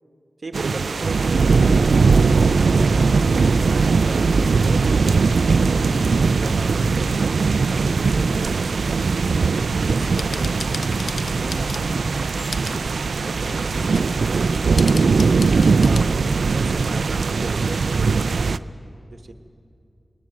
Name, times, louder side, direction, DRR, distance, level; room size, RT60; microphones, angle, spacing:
voice 1, 0.4-3.1 3.7-5.7 6.2-9.0 9.6-10.5 11.1-11.9 12.7-14.5 15.0-18.5 19.1-19.3, right 2 dB, 55° right, 5 dB, 1.5 m, -36 dB
sound 1, 0.5-18.6, right 4 dB, 85° right, 0.4 m, -19 dB
Run, 9.3-9.9, left 2 dB, 50° left, 2.2 m, -42 dB
sound 2, 9.9-12.0 12.3-12.8 13.5-14.2 14.8-16.0, left 3 dB, 70° left, 0.7 m, -35 dB
21.5 x 19.5 x 7.6 m, 2.5 s
wide cardioid pair, 75°, 0 cm